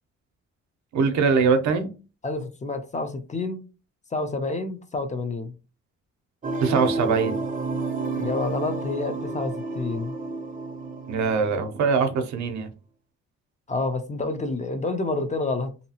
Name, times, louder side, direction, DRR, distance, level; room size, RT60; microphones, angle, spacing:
voice 1, 0.9-1.9 6.6-7.3 11.1-12.7, right 5 dB, 70° right, 0.6 m, -22 dB
voice 2, 2.2-3.6 4.1-5.5 8.2-10.2 13.7-15.8, left 3 dB, 25° left, 0.4 m, -28 dB
sound 1, 6.4-12.3, right 3 dB, 30° right, 0.6 m, -31 dB
2.7 x 2.3 x 2.7 m
cardioid pair, 90°, 30 cm